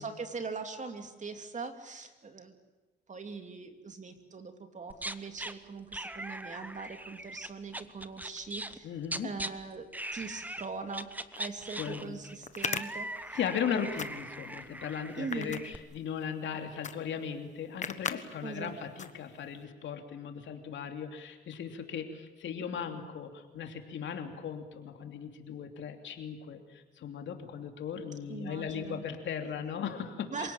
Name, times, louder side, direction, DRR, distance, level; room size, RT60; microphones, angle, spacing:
voice 1, 0.0-2.6 3.1-8.9 9.2-9.9 10.1-11.1 11.4-13.1 15.1-15.6 18.4-18.8 28.3-29.0 30.3-30.5, right 4 dB, 40° right, 6 dB, 2.9 m, -41 dB
sound 1, 4.9-5.5 5.9-8.8 9.0-9.5 9.9-10.6 10.9-15.8, right 1 dB, 10° right, 1.1 m, -40 dB
voice 2, 8.8-9.3 11.8-12.2 13.3-30.5, left 7 dB, 70° left, 5 dB, 3.0 m, -37 dB
sound 2, 11.4-11.5 12.4-13.6 13.9-14.5 15.1-16.3 16.8-17.0 17.3-17.4 17.8-18.2 18.6-18.7 19.0-19.5, left 6 dB, 35° left, 1.4 m, -37 dB
27.0 x 18.0 x 9.0 m, 1.2 s
cardioid pair, 90°, 20 cm